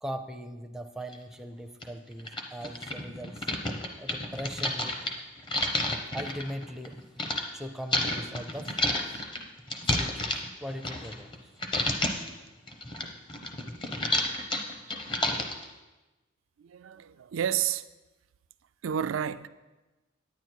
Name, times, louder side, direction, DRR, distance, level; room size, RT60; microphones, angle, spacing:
voice 1, 0.0-3.5 4.0-5.0 6.1-7.0 7.5-8.7 9.9-11.5, equal, ahead, 0.5 m, -39 dB
sound 1, 1.1-1.2 1.8-1.9 2.2-7.4 7.9-11.4 11.6-12.3 12.7-15.7, left 1 dB, 25° left, 0.8 m, -30 dB
voice 2, 16.6-17.9 18.8-19.5, right 9 dB, 85° right, 0.4 m, -30 dB
9.4 x 9.3 x 4.6 m
head